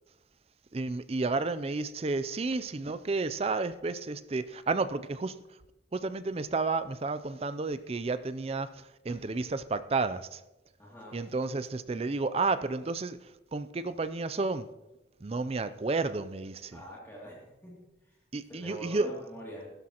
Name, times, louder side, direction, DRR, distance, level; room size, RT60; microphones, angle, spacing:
voice 1, 0.7-5.4 5.9-10.4 11.1-14.7 15.2-16.8 18.3-19.1, right 3 dB, 30° right, 13 dB, 0.4 m, -31 dB
voice 2, 10.8-11.2 16.7-17.8 18.0-18.2 18.5-19.7, equal, 10° left, -5 dB, 2.6 m, -44 dB
15.0 x 12.5 x 2.9 m, 1.0 s
head